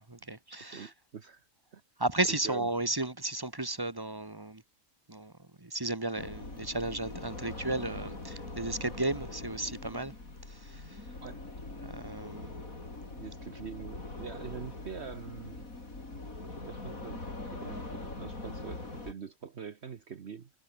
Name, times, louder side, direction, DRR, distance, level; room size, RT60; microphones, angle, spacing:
voice 1, 0.0-0.9 2.0-4.6 5.1-5.3 5.6-10.1 10.6-10.8 11.9-12.5, right 2 dB, 15° right, 1.4 m, -34 dB
voice 2, 0.7-1.4 1.7-1.8 2.2-2.9 11.2-11.4 13.2-15.6 16.4-17.2 17.5-20.5, right 6 dB, 55° right, 1.4 m, -44 dB
sound 1, 6.2-19.1, left 2 dB, 85° left, 5.3 m, -42 dB
omnidirectional pair, 1.4 m